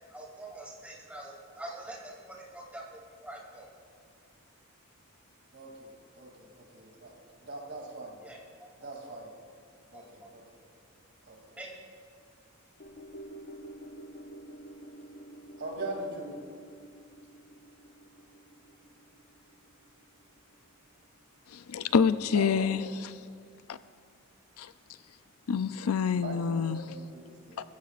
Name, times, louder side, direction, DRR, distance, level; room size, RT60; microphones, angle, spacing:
voice 1, 0.1-3.7 8.2-8.4 8.8-9.1 9.9-10.3 11.5-11.7, right 1 dB, 5° right, -3 dB, 2.8 m, -45 dB
voice 2, 5.5-7.2 7.4-8.2 8.8-9.3 9.9-10.4 11.2-11.4 15.6-16.4 22.3-22.9 26.2-27.6, right 2 dB, 55° right, 0 dB, 2.7 m, -41 dB
sound 1, 12.8-21.2 21.6-21.7, right 1 dB, 45° left, 0.9 m, -49 dB
voice 3, 21.5-22.8 23.7-23.8 24.6-24.7 25.5-26.8, left 6 dB, 80° left, 13 dB, 0.4 m, -27 dB
21.5 x 15.0 x 2.5 m, 2.2 s
head